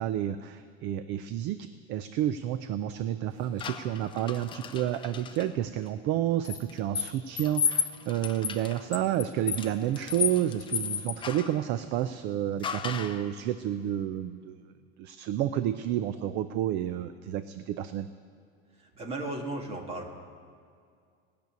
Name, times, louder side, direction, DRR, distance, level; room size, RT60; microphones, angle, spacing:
voice 1, 0.0-14.6 15.0-18.1, right 11 dB, 40° right, 12 dB, 0.4 m, -30 dB
sound 1, 3.6-5.5 6.4-11.6 12.6-13.3, left 7 dB, 15° left, 0.5 m, -33 dB
voice 2, 18.7-20.1, right 2 dB, 20° right, 2 dB, 1.6 m, -36 dB
18.0 x 6.8 x 9.2 m, 2.2 s
cardioid pair, 165°, 29 cm